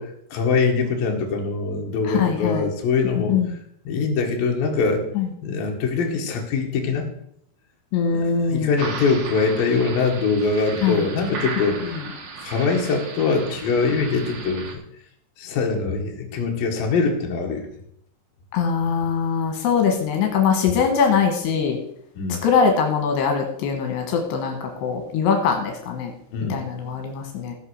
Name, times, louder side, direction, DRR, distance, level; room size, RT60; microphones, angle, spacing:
voice 1, 0.0-3.6 3.9-5.1 5.4-7.1 8.1-12.0 12.4-14.8 15.4-17.7 22.2-22.4 26.3-26.6, left 4 dB, 65° left, 1 dB, 3.5 m, -23 dB
voice 2, 2.1-2.7 3.3-3.5 5.2-5.3 7.9-8.8 10.8-11.1 18.5-21.8 22.4-26.1 26.5-27.6, left 6 dB, 80° left, 3 dB, 3.6 m, -22 dB
sound 1, 8.8-14.7, right 4 dB, 50° right, 2.3 m, -35 dB
16.0 x 5.7 x 6.5 m, 0.71 s
omnidirectional pair, 4.7 m